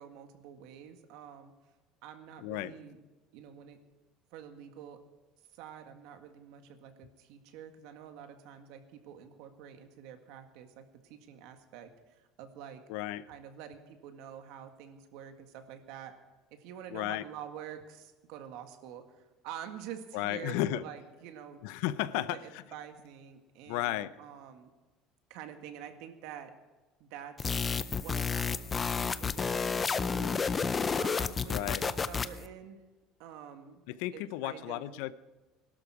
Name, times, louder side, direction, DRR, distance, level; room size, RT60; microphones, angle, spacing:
voice 1, 0.0-1.5 2.0-3.0 3.3-3.8 4.3-5.0 5.5-12.8 13.3-16.2 16.5-21.6 22.2-24.7 25.3-26.5 27.0-27.7 27.9-30.4 31.0-32.8 33.2-33.8 34.1-35.0, right 9 dB, 70° right, 6 dB, 1.7 m, -47 dB
voice 2, 2.4-2.7 12.9-13.3 16.9-17.2 20.1-20.8 21.6-22.6 23.7-24.2 31.5-31.8 33.9-35.1, left 14 dB, 80° left, 15 dB, 0.6 m, -34 dB
sound 1, 27.4-32.5, left 5 dB, 15° left, 0.4 m, -31 dB
21.0 x 12.0 x 4.9 m, 1.2 s
cardioid pair, 170°, 0 cm